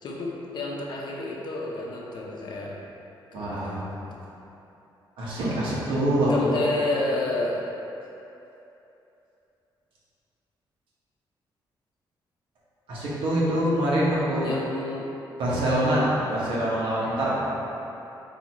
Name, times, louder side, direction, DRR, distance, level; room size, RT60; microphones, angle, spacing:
voice 1, 0.0-2.8 3.3-4.2 6.3-7.6 14.4-15.1, left 2 dB, 60° left, -2 dB, 0.7 m, -30 dB
voice 2, 3.3-3.8 5.2-6.6 12.9-14.5 15.4-17.4, right 1 dB, 85° right, -7 dB, 1.1 m, -24 dB
4.5 x 2.8 x 4.0 m, 2.9 s
cardioid pair, 125°, 9 cm